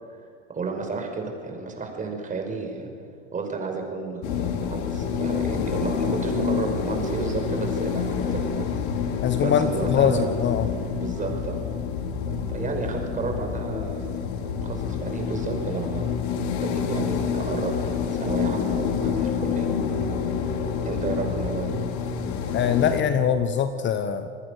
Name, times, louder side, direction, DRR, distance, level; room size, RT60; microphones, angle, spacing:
voice 1, 0.5-2.9 3.3-8.7 9.4-10.3 11.0-11.6 12.3-16.1 16.6-19.7 20.7-21.7, right 4 dB, 20° right, 2 dB, 5.6 m, -32 dB
sound 1, 4.2-23.0, left 7 dB, 55° left, 3.0 m, -28 dB
voice 2, 9.2-10.6 22.5-24.3, left 8 dB, 30° left, 10 dB, 1.1 m, -23 dB
27.5 x 20.0 x 6.7 m, 2.4 s
hypercardioid pair, 100°, 35 cm